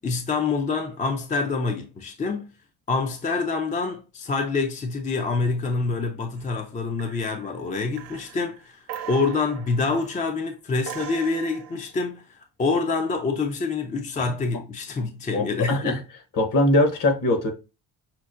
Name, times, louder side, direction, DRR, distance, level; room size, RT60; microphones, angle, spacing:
voice 1, 0.0-2.5 2.9-12.2 12.6-16.0, left 4 dB, 20° left, 0.4 m, -26 dB
sound 1, 6.3-6.7 7.0-7.5 7.9-10.3 10.8-12.0 14.9-15.2, right 9 dB, 70° right, 0.8 m, -40 dB
voice 2, 15.3-16.0 16.3-17.5, left 1 dB, 50° left, 1.0 m, -21 dB
5.8 x 2.0 x 2.5 m
cardioid pair, 110°, 41 cm